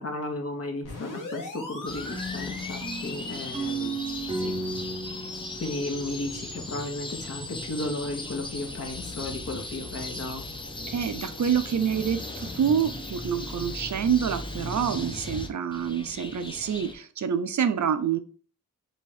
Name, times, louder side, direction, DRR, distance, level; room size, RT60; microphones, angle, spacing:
voice 1, 0.0-3.9 4.4-4.5 5.6-10.5, left 2 dB, 45° left, 2 dB, 0.9 m, -34 dB
sound 1, 0.8-14.7, left 3 dB, 65° left, 1.1 m, -42 dB
sound 2, 1.9-16.9, left 2 dB, 15° left, 0.5 m, -38 dB
sound 3, 2.1-7.0, right 2 dB, 15° right, 0.8 m, -35 dB
voice 2, 10.9-18.2, right 8 dB, 55° right, 10 dB, 0.5 m, -27 dB
3.1 x 3.0 x 4.5 m, 0.41 s
wide cardioid pair, 145°, 35 cm